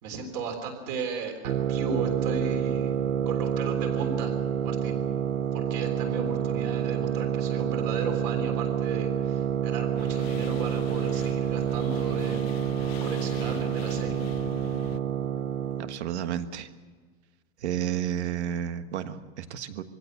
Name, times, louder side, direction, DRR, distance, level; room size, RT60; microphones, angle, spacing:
voice 1, 0.0-2.9 3.3-4.3 4.6-5.0 5.5-12.5 13.0-14.2, right 4 dB, 35° right, 4 dB, 3.6 m, -35 dB
sound 1, 1.5-16.0, right 9 dB, 85° right, 1.2 m, -28 dB
sound 2, 10.0-15.0, left 11 dB, 55° left, 0.9 m, -42 dB
voice 2, 15.8-16.7 17.6-19.8, right 10 dB, 65° right, 10 dB, 1.5 m, -31 dB
23.0 x 16.0 x 8.0 m, 1.5 s
supercardioid pair, 180°, 37 cm